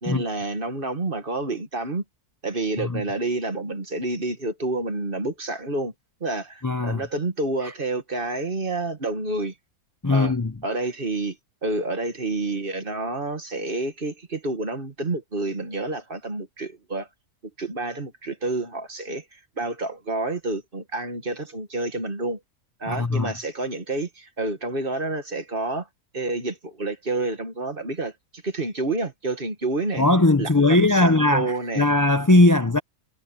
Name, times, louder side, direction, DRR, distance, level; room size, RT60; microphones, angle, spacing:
voice 1, 0.0-2.0 2.4-5.9 6.2-9.5 10.1-10.4 10.6-11.4 11.6-17.1 17.6-22.4 22.8-25.9 26.1-28.1 28.4-30.0 30.4-31.9, right 2 dB, 35° right, 2.1 m, -29 dB
voice 2, 6.6-7.0 10.0-10.5 22.9-23.3 30.0-32.8, left 2 dB, 20° left, 0.5 m, -19 dB
omnidirectional pair, 1.6 m